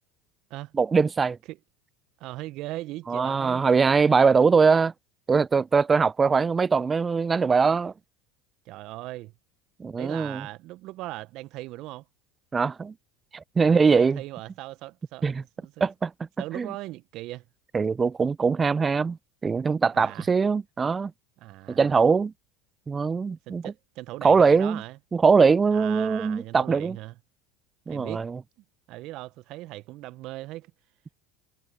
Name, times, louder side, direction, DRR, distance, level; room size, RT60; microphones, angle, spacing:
voice 1, 0.8-1.4 3.1-4.9 5.3-7.9 9.8-10.4 12.5-12.9 13.3-14.2 15.2-15.4 15.8-16.1 16.6-16.7 17.7-19.2 19.4-21.1 21.7-22.3 22.9-23.6 24.2-24.8 25.1-27.0 27.9-28.4, right 5 dB, 25° right, 0.4 m, -22 dB
voice 2, 2.2-3.7 8.6-9.3 10.0-12.0 13.8-15.3 15.6-15.9 16.4-17.4 19.9-20.3 21.4-22.0 23.5-25.0 25.7-27.1 27.9-28.3 28.9-30.7, right 18 dB, 55° right, 0.9 m, -39 dB
hypercardioid pair, 80°, 0 cm